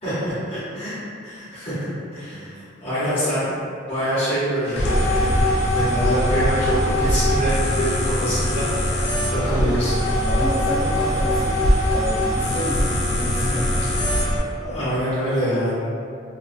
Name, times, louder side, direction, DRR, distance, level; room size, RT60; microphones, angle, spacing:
voice 1, 0.0-0.9 1.2-9.9 14.6-15.7, equal, 30° left, -14 dB, 0.9 m, -26 dB
sound 1, 4.8-14.4, equal, 75° left, 0.4 m, -21 dB
voice 2, 9.4-9.8 10.2-13.9, equal, 5° right, -9 dB, 0.3 m, -29 dB
2.3 x 2.2 x 2.5 m, 2.4 s
head